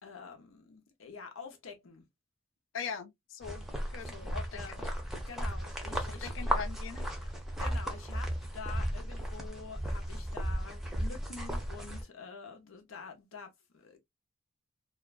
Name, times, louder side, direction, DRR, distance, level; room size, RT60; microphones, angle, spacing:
voice 1, 0.0-2.1 3.6-4.9 5.3-6.5 7.6-14.0, left 5 dB, 85° left, 0.8 m, -47 dB
voice 2, 2.7-3.6 3.9-4.6 6.1-7.1, left 6 dB, 65° left, 0.4 m, -41 dB
sound 1, 3.4-12.0, equal, ahead, 0.6 m, -35 dB
2.5 x 2.2 x 2.3 m
head